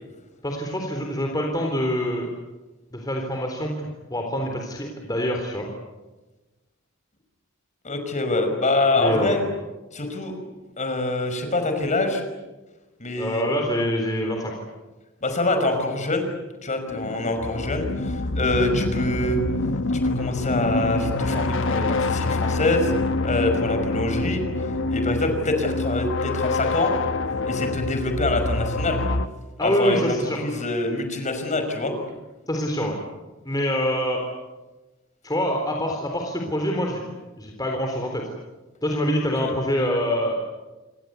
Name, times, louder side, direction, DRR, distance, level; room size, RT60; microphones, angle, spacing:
voice 1, 0.4-2.3 2.9-5.7 9.0-9.4 13.2-14.5 29.6-30.4 32.5-33.0 33.5-34.2 35.2-37.0 37.4-38.2 38.8-40.3, equal, 20° left, 1 dB, 3.8 m, -25 dB
voice 2, 7.8-9.4 9.9-10.4 10.8-12.2 13.0-13.5 15.2-16.3 16.6-19.4 20.0-22.9 23.2-24.4 24.9-27.0 27.4-29.0 29.6-31.9, left 2 dB, 35° left, 6 dB, 5.5 m, -25 dB
sound 1, 16.9-29.3, left 2 dB, 65° left, 1.2 m, -26 dB
28.0 x 25.0 x 8.3 m, 1.1 s
head